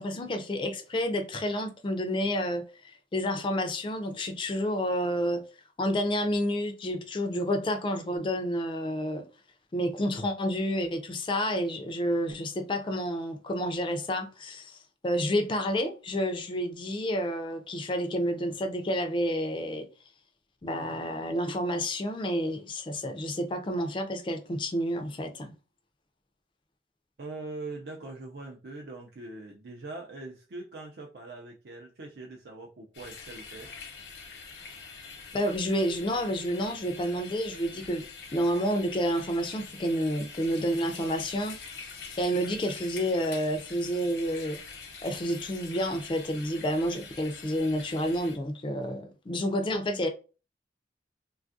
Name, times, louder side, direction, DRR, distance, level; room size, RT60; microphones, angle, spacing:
voice 1, 0.0-5.4 5.8-9.2 9.7-14.8 15.0-19.9 20.6-25.5 35.3-38.0 38.3-41.6 42.2-44.6 45.0-50.1, equal, 25° left, 0.3 m, -29 dB
voice 2, 27.2-33.7, right 2 dB, 60° right, 0.4 m, -42 dB
sound 1, 32.9-48.4, left 5 dB, 80° left, 0.8 m, -45 dB
3.3 x 2.3 x 2.5 m
head